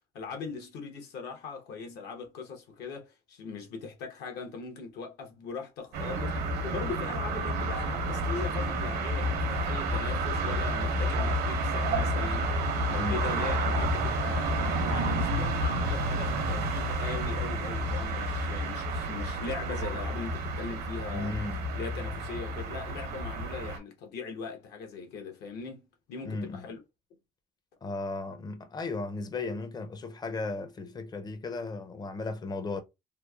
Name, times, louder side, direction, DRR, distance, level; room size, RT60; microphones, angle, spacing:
voice 1, 0.1-21.3 21.7-26.8, left 5 dB, 80° left, 0.9 m, -40 dB
sound 1, 5.9-23.8, right 1 dB, 70° right, 0.8 m, -30 dB
voice 2, 21.1-21.6 26.3-26.6 27.8-32.8, left 3 dB, 25° left, 0.5 m, -35 dB
3.0 x 2.0 x 2.3 m
cardioid pair, 110°, 17 cm